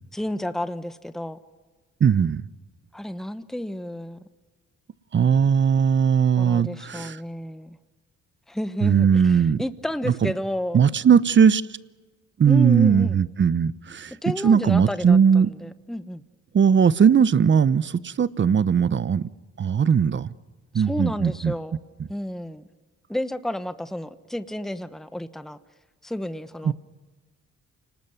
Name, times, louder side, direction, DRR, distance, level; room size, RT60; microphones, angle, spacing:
voice 1, 0.1-1.4 2.9-4.3 6.4-7.8 8.5-10.8 12.5-13.2 14.2-16.2 20.7-21.8 22.1-22.6 23.1-25.6 26.0-26.7, left 1 dB, ahead, 12 dB, 1.1 m, -31 dB
voice 2, 2.0-2.4 5.1-7.2 8.8-9.6 10.1-10.3 10.7-11.6 12.4-14.1 14.4-15.5 16.5-19.3 19.6-20.3 20.7-21.5 26.6-26.7, right 7 dB, 40° right, 18 dB, 0.9 m, -19 dB
29.0 x 19.5 x 9.5 m, 1.4 s
cardioid pair, 90°, 30 cm